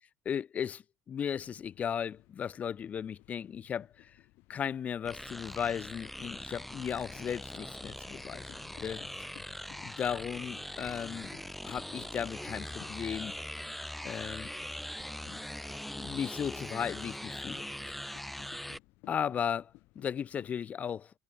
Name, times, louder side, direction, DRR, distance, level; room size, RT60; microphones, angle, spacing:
voice 1, 0.2-4.1 4.5-9.0 9.8-11.3 11.6-13.3 14.0-14.5 15.3-15.4 15.9-17.7 19.1-21.1, left 8 dB, 40° left, 1.2 m, -36 dB
sound 1, 1.2-20.6, left 22 dB, 70° left, 7.3 m, -59 dB
sound 2, 5.1-18.8, left 1 dB, 5° left, 2.6 m, -42 dB
hypercardioid pair, 75°, 4 cm